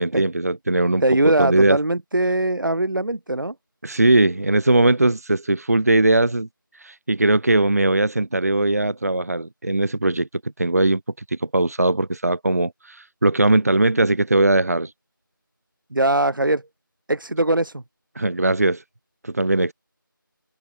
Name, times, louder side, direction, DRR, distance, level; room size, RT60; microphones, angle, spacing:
voice 1, 0.0-1.0 1.4-1.8 3.8-6.5 6.8-10.3 10.6-11.0 11.3-14.9 18.2-18.8 19.2-19.7, right 2 dB, 45° right, 0.7 m, -19 dB
voice 2, 1.0-3.5 15.9-16.6 17.1-17.8, right 2 dB, 65° right, 1.5 m, -21 dB
figure-of-eight pair, 170°, 12 cm